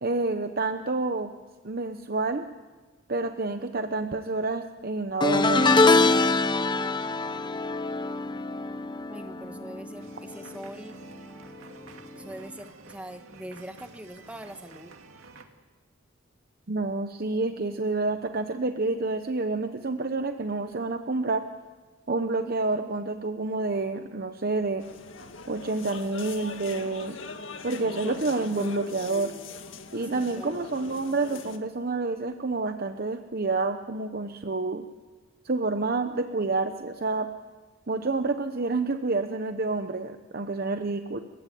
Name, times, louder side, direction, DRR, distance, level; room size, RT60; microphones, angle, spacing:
voice 1, 0.0-1.3 1.6-2.4 3.1-6.2 16.7-21.5 22.1-24.9 25.5-27.2 27.6-29.3 29.9-34.9 35.4-37.3 37.9-41.2, right 3 dB, 45° right, 8 dB, 0.9 m, -28 dB
sound 1, 5.2-10.6 10.9-11.2 12.5-12.6, left 3 dB, 20° left, 0.8 m, -24 dB
voice 2, 9.1-11.0 12.1-14.9 30.1-30.7, right 1 dB, 5° right, 7 dB, 1.4 m, -43 dB
sound 2, 10.0-15.5, right 3 dB, 85° right, 2.2 m, -50 dB
sound 3, 24.8-31.6, left 4 dB, 65° left, 1.9 m, -40 dB
30.0 x 16.0 x 9.2 m, 1.4 s
head